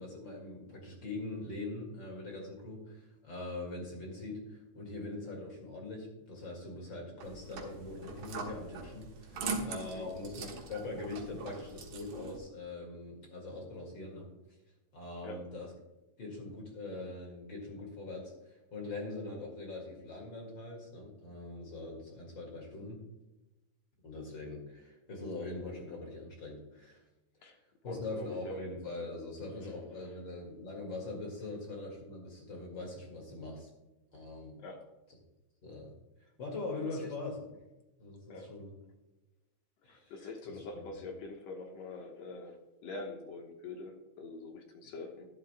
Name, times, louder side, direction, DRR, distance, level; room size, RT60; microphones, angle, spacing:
voice 1, 0.0-14.3 14.9-15.7 16.2-23.0 24.0-27.0 27.8-33.7 34.1-34.6 35.6-35.9 36.4-37.4 38.0-38.7 39.8-40.3 40.7-40.8, left 2 dB, 40° left, 0 dB, 2.5 m, -42 dB
sound 1, 7.2-12.4, right 4 dB, 85° right, 2.9 m, -42 dB
voice 2, 27.9-28.6 29.6-29.7 34.6-34.8 36.8-37.1 38.3-38.5 39.9-42.6 42.8-45.3, left 3 dB, 65° left, 3 dB, 2.2 m, -44 dB
13.0 x 11.5 x 2.2 m, 1.0 s
omnidirectional pair, 3.4 m